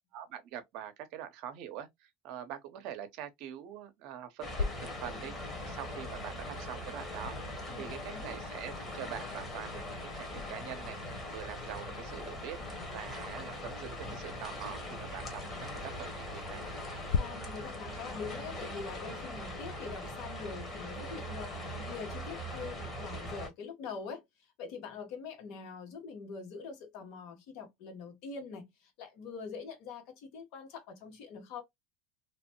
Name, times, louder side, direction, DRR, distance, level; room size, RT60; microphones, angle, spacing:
voice 1, 0.1-11.0 11.3-16.6, right 10 dB, 65° right, 0.7 m, -44 dB
sound 1, 4.4-23.5, left 1 dB, 25° left, 1.2 m, -41 dB
sound 2, 4.5-17.2, left 6 dB, 90° left, 0.3 m, -43 dB
voice 2, 7.7-8.4 17.2-31.6, left 5 dB, 65° left, 1.1 m, -44 dB
3.0 x 2.1 x 2.9 m
supercardioid pair, 115°, 0 cm